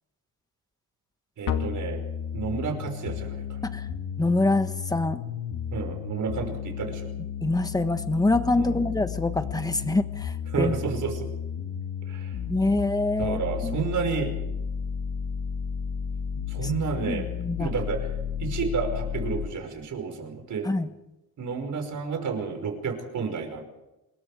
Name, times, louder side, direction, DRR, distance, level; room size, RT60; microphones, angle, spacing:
voice 1, 1.4-2.0 2.3-3.6 5.7-7.1 8.6-8.8 10.5-11.3 12.1-12.3 13.2-14.3 16.5-17.3 17.6-18.1 18.4-20.7 21.4-23.6, right 5 dB, 55° right, 5 dB, 5.5 m, -30 dB
sound 1, 1.5-19.5, left 8 dB, 65° left, 2.2 m, -33 dB
voice 2, 4.2-5.2 7.4-10.7 12.5-13.8 16.6-16.7 17.1-17.7 20.6-20.9, left 2 dB, 10° left, 9 dB, 1.4 m, -25 dB
27.0 x 22.0 x 5.0 m, 0.96 s
cardioid pair, 135°, 35 cm